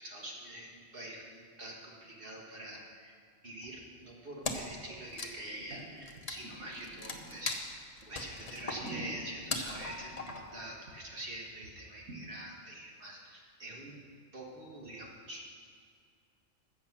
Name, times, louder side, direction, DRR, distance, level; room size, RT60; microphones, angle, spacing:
voice 1, 0.0-3.1 3.4-7.7 8.1-14.0 14.3-15.5, right 1 dB, 45° right, -2 dB, 1.8 m, -45 dB
sound 1, 3.6-3.7 3.9-4.0 4.6-5.0 5.5-7.5 8.0-8.1 8.5-10.6 10.9-11.0 11.2-11.3 11.6-11.7 12.1-12.2, right 2 dB, 90° right, 1.9 m, -47 dB
Wood, 4.4-4.8 5.1-10.7, left 3 dB, 35° left, 0.9 m, -40 dB
13.5 x 7.5 x 6.1 m, 2.2 s
omnidirectional pair, 1.3 m